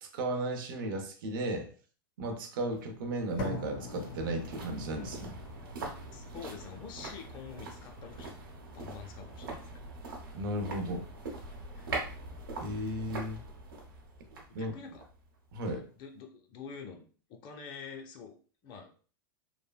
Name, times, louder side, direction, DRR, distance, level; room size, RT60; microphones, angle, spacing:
voice 1, 0.0-1.7 2.2-5.3 10.3-11.0 12.6-13.4 14.5-14.7 15.5-15.8, right 1 dB, 70° right, 5 dB, 0.7 m, -35 dB
sound 1, 2.7-15.9 16.2-16.3, right 2 dB, 90° right, 1.0 m, -43 dB
sound 2, 3.4-11.4, left 2 dB, 55° left, 1.3 m, -46 dB
voice 2, 6.1-8.3 8.7-9.8 11.8-11.9 14.5-15.0 15.6-18.4 18.6-18.9, left 6 dB, 40° left, 3 dB, 0.6 m, -47 dB
3.2 x 2.1 x 2.3 m, 0.40 s
hypercardioid pair, 110°, 12 cm